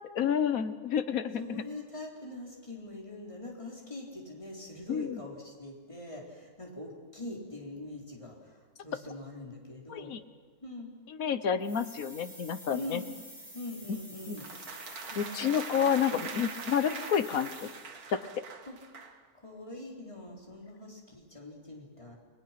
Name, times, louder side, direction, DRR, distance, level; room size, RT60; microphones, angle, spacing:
voice 1, 0.1-1.3 4.9-5.2 9.9-10.2 11.1-13.0 13.9-14.0 14.3-14.4 15.2-17.5 18.1-18.2, left 8 dB, 70° left, 11 dB, 1.5 m, -29 dB
voice 2, 1.4-10.1 10.6-10.9 12.7-13.1 13.5-14.5 15.1-15.9 18.7-18.8 19.4-22.2, left 2 dB, 20° left, -1 dB, 4.1 m, -43 dB
sound 1, 11.6-18.0, right 1 dB, 15° right, 6.7 m, -49 dB
sound 2, 14.4-19.2, right 5 dB, 90° right, 2.0 m, -42 dB
29.5 x 21.5 x 5.9 m, 1.5 s
omnidirectional pair, 1.5 m